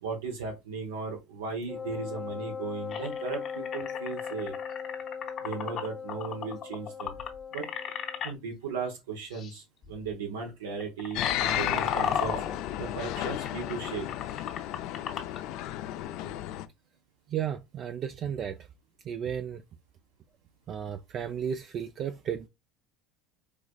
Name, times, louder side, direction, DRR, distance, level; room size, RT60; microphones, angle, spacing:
voice 1, 0.0-4.5 5.4-7.1 7.5-7.7 8.2-12.4 12.8-14.1, right 5 dB, 90° right, 0.8 m, -36 dB
Wind instrument woodwind instrument, 1.7-8.3, left 6 dB, 10° left, 0.7 m, -39 dB
sound 1, 2.9-8.3 9.3-9.5 9.8-10.1 10.6-15.4, left 7 dB, 45° left, 0.8 m, -35 dB
sound 2, 11.1-16.7, left 13 dB, 65° left, 0.3 m, -33 dB
voice 2, 17.3-18.7 19.0-19.6 20.7-22.5, right 8 dB, 45° right, 0.3 m, -34 dB
4.5 x 2.4 x 2.2 m
supercardioid pair, 90°, 0 cm